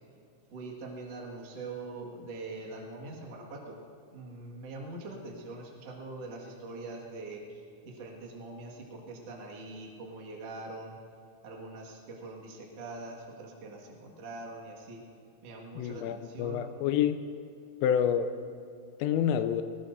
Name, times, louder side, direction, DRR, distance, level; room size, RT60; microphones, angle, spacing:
voice 1, 0.5-3.8 4.1-11.0 11.4-15.0 15.4-16.7, right 2 dB, 60° right, -2 dB, 1.7 m, -43 dB
voice 2, 15.8-17.2 17.8-18.3 19.0-19.6, left 9 dB, 85° left, 9 dB, 3.2 m, -28 dB
22.0 x 18.5 x 2.6 m, 2.4 s
omnidirectional pair, 5.8 m